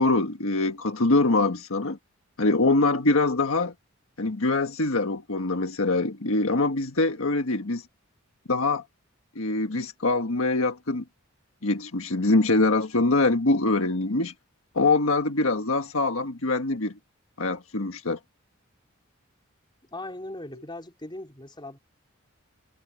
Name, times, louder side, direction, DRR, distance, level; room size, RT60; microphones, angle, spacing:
voice 1, 0.0-2.0 2.4-3.7 4.2-7.8 8.5-8.8 9.3-11.0 11.6-14.3 14.7-16.9 17.4-18.2, left 2 dB, 70° left, 1.6 m, -24 dB
voice 2, 19.9-21.8, left 2 dB, 20° left, 4.9 m, -39 dB
head